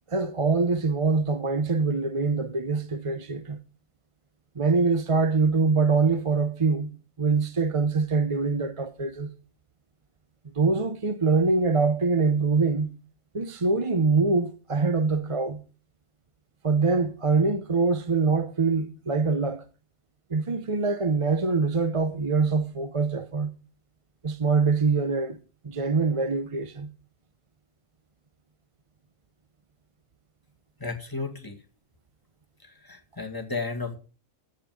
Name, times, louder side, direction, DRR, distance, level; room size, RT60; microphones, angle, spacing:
voice 1, 0.1-3.6 4.6-6.9 7.2-9.3 10.5-12.9 13.3-15.6 16.6-19.6 20.3-23.5 24.2-25.4 25.6-26.9, right 4 dB, 30° right, 0.7 m, -24 dB
voice 2, 30.8-31.6 32.6-34.0, left 3 dB, 15° left, 2.0 m, -33 dB
13.5 x 5.5 x 7.6 m
omnidirectional pair, 1.4 m